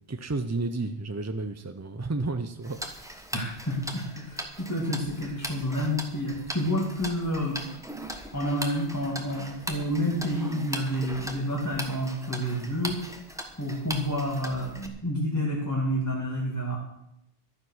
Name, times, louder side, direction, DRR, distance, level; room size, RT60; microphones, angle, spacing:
voice 1, 0.1-2.8, right 3 dB, 25° right, 8 dB, 0.4 m, -31 dB
Tick-tock, 2.6-14.9, equal, 5° right, 1.2 m, -39 dB
voice 2, 3.3-7.6 8.3-13.0 13.6-16.8, equal, 15° left, -4 dB, 2.4 m, -29 dB
12.5 x 9.6 x 6.3 m, 0.82 s
omnidirectional pair, 1.0 m